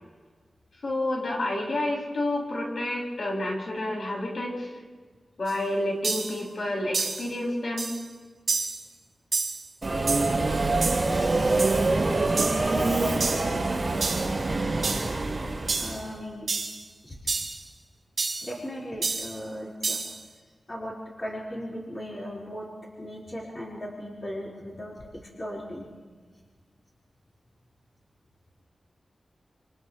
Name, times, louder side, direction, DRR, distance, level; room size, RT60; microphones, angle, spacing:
voice 1, 0.8-4.7 5.4-7.9, left 1 dB, 60° left, -3 dB, 6.9 m, -29 dB
sound 1, 5.5-5.6 6.0-6.4 6.9-7.3 7.8-8.0 8.5-8.8 9.3-9.6 10.1-10.4 10.8-11.1 11.6-11.8 12.4-12.7 13.2-13.5 14.0-14.3 14.8-15.1 15.7-16.0 16.5-16.8 17.3-17.6 18.2-18.5 19.0-19.4 19.8-20.2, right 4 dB, 65° right, 5.7 m, -29 dB
Subway metro underground, 9.8-16.0, right 2 dB, 30° right, 3.2 m, -25 dB
voice 2, 12.1-13.7 15.8-16.5 17.0-17.2 18.4-20.0 20.7-22.7 23.0-25.9, equal, 30° left, -6 dB, 4.7 m, -38 dB
29.5 x 28.5 x 3.3 m, 1.5 s
wide cardioid pair, 110°, 0 cm